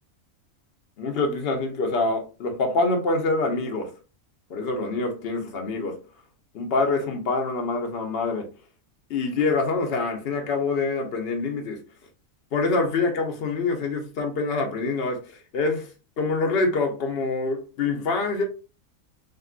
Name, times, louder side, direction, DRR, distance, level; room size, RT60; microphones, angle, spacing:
voice 1, 1.0-3.9 4.5-6.0 6.5-8.5 9.1-11.8 12.5-15.9 16.2-18.4, left 3 dB, 50° left, 0.8 m, -25 dB
3.5 x 2.4 x 2.4 m
omnidirectional pair, 1.5 m